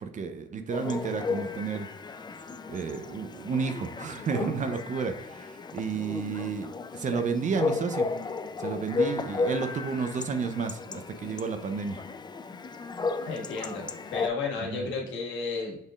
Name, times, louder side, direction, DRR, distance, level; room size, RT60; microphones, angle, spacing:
voice 1, 0.0-1.9 2.7-8.1 8.6-12.0 14.7-14.9, right 5 dB, 40° right, 8 dB, 0.6 m, -31 dB
Chatter / Bark / Livestock farm animals working animals, 0.7-14.3, left 4 dB, 20° left, 0.4 m, -34 dB
voice 2, 13.2-15.8, left 4 dB, 70° left, -2 dB, 1.7 m, -33 dB
6.5 x 3.4 x 2.4 m, 0.80 s
supercardioid pair, 75°, 20 cm